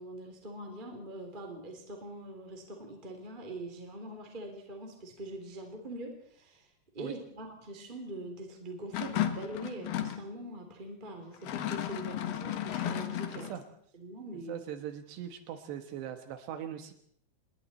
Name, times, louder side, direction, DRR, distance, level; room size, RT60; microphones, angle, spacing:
voice 1, 0.0-6.7 6.9-13.5 13.9-14.6, right 1 dB, 15° right, 3 dB, 2.8 m, -43 dB
sound 1, 8.9-10.2 11.3-13.6, left 11 dB, 65° left, 2.9 m, -34 dB
voice 2, 14.5-16.9, right 10 dB, 80° right, 7 dB, 3.4 m, -40 dB
27.0 x 22.5 x 4.3 m, 0.63 s
omnidirectional pair, 4.9 m